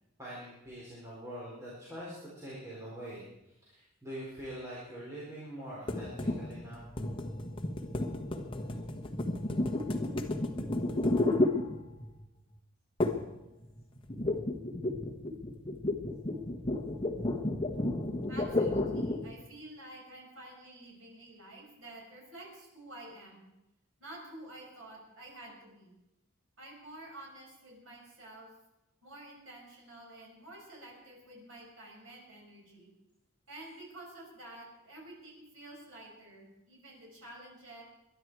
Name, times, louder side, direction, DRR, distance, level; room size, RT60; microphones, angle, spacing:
voice 1, 0.2-6.9, right 1 dB, 15° right, -7 dB, 4.2 m, -44 dB
sound 1, 5.9-12.2 13.0-13.4 13.6-19.3, left 2 dB, 25° left, 1.3 m, -32 dB
voice 2, 18.3-23.5 24.0-25.9 26.6-28.5 29.0-32.9 33.5-37.8, right 1 dB, 90° right, -2 dB, 6.4 m, -50 dB
22.5 x 11.0 x 4.7 m, 0.92 s
head